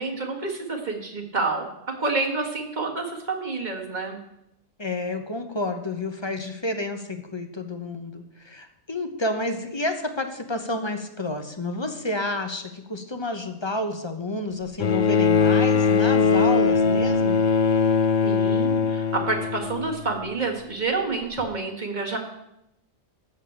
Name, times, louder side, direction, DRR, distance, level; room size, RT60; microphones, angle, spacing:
voice 1, 0.0-1.7 2.0-4.2 18.2-22.2, right 3 dB, 40° right, 1 dB, 1.9 m, -28 dB
voice 2, 4.8-17.4, left 2 dB, 25° left, 6 dB, 1.0 m, -30 dB
Bowed string instrument, 14.8-20.3 21.4-21.5, left 5 dB, 50° left, 0.7 m, -21 dB
13.0 x 4.5 x 8.6 m, 0.84 s
omnidirectional pair, 1.1 m